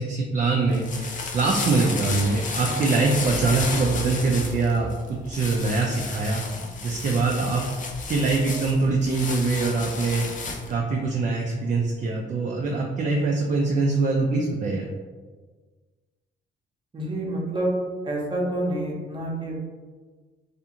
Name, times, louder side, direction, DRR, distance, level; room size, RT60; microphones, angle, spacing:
voice 1, 0.0-4.9 5.3-6.4 6.8-7.7 8.1-10.2 10.7-14.9, right 3 dB, 40° right, 0 dB, 0.4 m, -23 dB
sound 1, 0.5-10.8, left 3 dB, 40° left, 0.5 m, -33 dB
voice 2, 16.9-17.8 18.0-19.7, right 1 dB, 25° right, -2 dB, 0.7 m, -28 dB
2.5 x 2.4 x 2.8 m, 1.4 s
cardioid pair, 90°, 20 cm